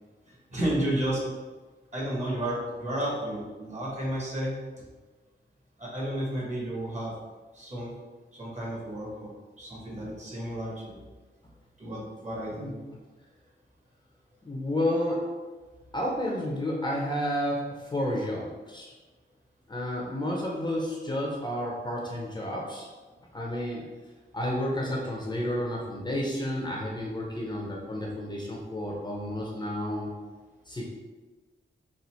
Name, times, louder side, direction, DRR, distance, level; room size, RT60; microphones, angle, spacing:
voice 1, 0.5-1.2 1.9-4.6 5.8-7.1 7.5-8.0 8.3-9.3 9.6-11.0 11.8-12.7, right 1 dB, 40° right, -5 dB, 1.4 m, -32 dB
voice 2, 14.4-15.3 15.9-18.9 19.7-22.9 23.3-23.8 24.3-30.1 30.7-30.9, left 1 dB, 25° left, -3 dB, 0.7 m, -31 dB
4.1 x 2.5 x 4.3 m, 1.3 s
wide cardioid pair, 165°, 19 cm